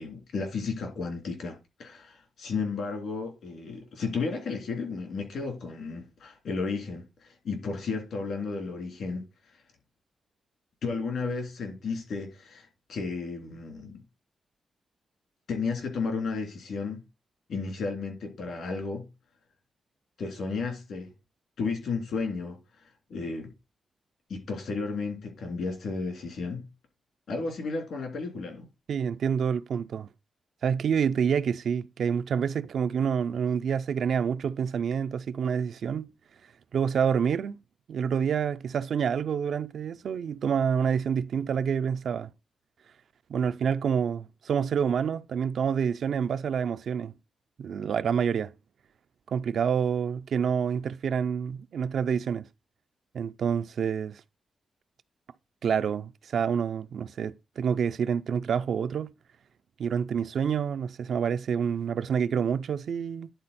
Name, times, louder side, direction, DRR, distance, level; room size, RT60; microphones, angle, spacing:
voice 1, 0.0-9.2 10.8-14.0 15.5-17.0 17.5-19.1 20.2-21.1 21.6-22.6 23.1-23.5 24.3-26.7 27.3-28.6, left 4 dB, 75° left, 3.1 m, -33 dB
voice 2, 28.9-30.1 30.6-36.1 36.7-37.6 37.9-42.3 43.3-47.1 47.6-48.5 49.3-52.5 53.1-54.2 55.6-59.1 59.8-63.3, right 7 dB, 70° right, 0.5 m, -27 dB
10.5 x 4.2 x 4.1 m
wide cardioid pair, 140°, 0 cm